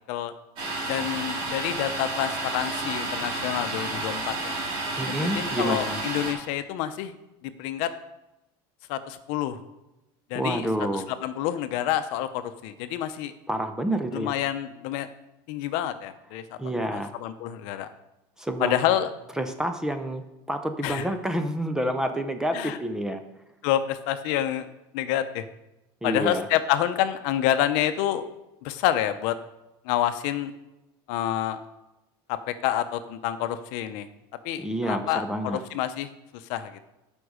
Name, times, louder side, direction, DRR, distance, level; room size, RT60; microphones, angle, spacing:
Domestic sounds home sounds, 0.6-6.3, right 2 dB, 45° right, 2.7 m, -31 dB
voice 1, 0.9-4.5 5.1-7.1 7.4-7.9 8.9-9.6 10.3-10.7 10.9-13.3 14.1-15.1 15.5-16.4 16.9-17.9 18.6-19.1 20.8-21.1 22.5-22.8 23.6-24.7 24.9-25.4 26.0-28.3 28.6-29.3 29.8-30.5 31.1-31.6 32.5-34.1 34.4-36.9, left 11 dB, 60° left, 10 dB, 0.7 m, -28 dB
voice 2, 5.0-6.0 10.3-11.1 13.5-14.4 16.6-17.1 18.4-18.8 19.4-23.2 26.0-26.5 34.6-35.6, right 1 dB, 5° right, 7 dB, 0.5 m, -28 dB
12.5 x 5.3 x 5.0 m, 0.97 s
cardioid pair, 170°, 12 cm